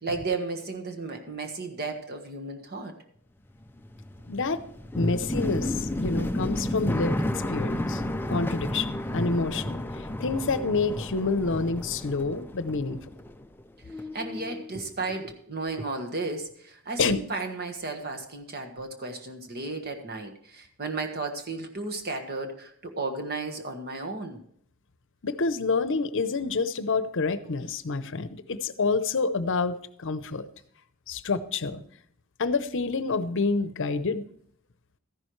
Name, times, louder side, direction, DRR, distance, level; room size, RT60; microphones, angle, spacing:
voice 1, 0.0-2.9 14.1-24.4, right 3 dB, 45° right, 5 dB, 1.5 m, -34 dB
sound 1, 3.5-13.6 13.9-14.7, left 1 dB, 10° left, 0.4 m, -32 dB
voice 2, 4.3-4.6 4.9-8.0 8.3-13.0 17.0-17.2 25.2-30.4 31.1-31.8 32.4-34.2, left 4 dB, 60° left, 13 dB, 0.7 m, -28 dB
13.5 x 11.0 x 3.1 m, 0.64 s
head